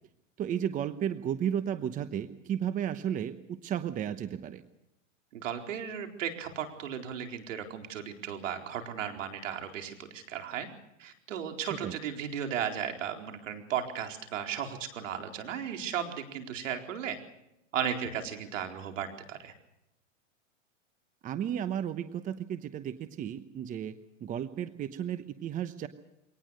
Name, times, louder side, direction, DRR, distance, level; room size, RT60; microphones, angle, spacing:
voice 1, 0.4-4.6 11.7-12.0 21.2-23.9 24.2-25.9, right 9 dB, 20° right, 11 dB, 1.0 m, -33 dB
voice 2, 5.3-10.7 11.0-17.2 17.7-19.5, right 8 dB, 75° right, 5 dB, 4.3 m, -35 dB
24.0 x 18.5 x 6.5 m, 0.85 s
hypercardioid pair, 140°, 38 cm